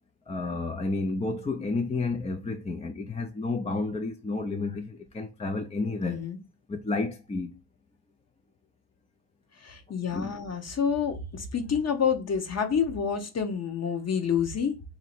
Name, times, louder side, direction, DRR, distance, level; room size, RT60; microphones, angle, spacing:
voice 1, 0.3-6.2 6.7-7.6 10.1-10.4, left 3 dB, 15° left, 0.3 m, -31 dB
voice 2, 6.0-6.4 9.6-14.7, left 7 dB, 35° left, 0.8 m, -28 dB
3.0 x 2.7 x 4.3 m
cardioid pair, 100°, 44 cm